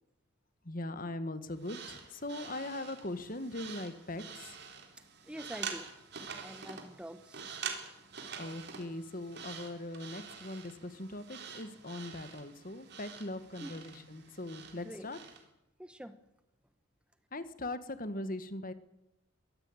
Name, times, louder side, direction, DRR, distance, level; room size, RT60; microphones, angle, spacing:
voice 1, 0.6-4.6 8.4-15.2 17.3-18.7, left 1 dB, 40° left, 12 dB, 1.6 m, -40 dB
sound 1, 1.6-15.4, right 6 dB, 50° right, 3.7 m, -46 dB
voice 2, 5.3-5.9 6.4-7.5 13.6-13.7 14.8-15.1 15.8-16.1, equal, 5° right, 11 dB, 1.0 m, -45 dB
23.0 x 17.0 x 9.1 m, 0.90 s
head